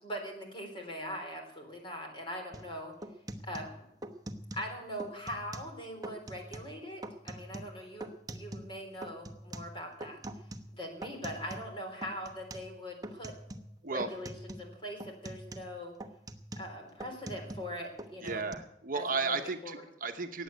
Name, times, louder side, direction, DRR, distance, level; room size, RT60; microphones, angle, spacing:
voice 1, 0.0-2.9 3.4-3.7 4.5-10.2 10.7-13.3 13.9-15.9 16.6-18.4 18.9-19.4 19.6-19.8, equal, 30° left, 3 dB, 3.8 m, -41 dB
sound 1, 2.5-2.7 3.0-4.7 5.0-5.8 6.0-6.7 7.0-8.8 9.0-11.7 12.0-12.7 13.0-13.7 14.0-14.7 15.0-17.7 18.0-18.5, right 1 dB, 20° right, 1.0 m, -44 dB
voice 2, 18.2-20.4, right 4 dB, 50° right, 6 dB, 1.0 m, -34 dB
15.0 x 9.2 x 9.1 m, 0.81 s
head